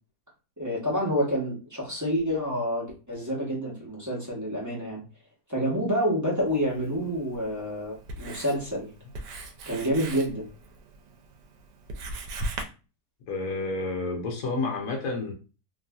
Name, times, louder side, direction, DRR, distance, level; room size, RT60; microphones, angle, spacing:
voice 1, 0.6-5.0 5.5-8.9 9.7-10.5, equal, 15° right, -5 dB, 0.7 m, -28 dB
Writing, 6.5-12.6, right 2 dB, 90° right, 1.2 m, -40 dB
voice 2, 13.3-15.3, left 3 dB, 60° left, 1 dB, 1.0 m, -30 dB
3.1 x 2.6 x 2.3 m, 0.33 s
omnidirectional pair, 1.8 m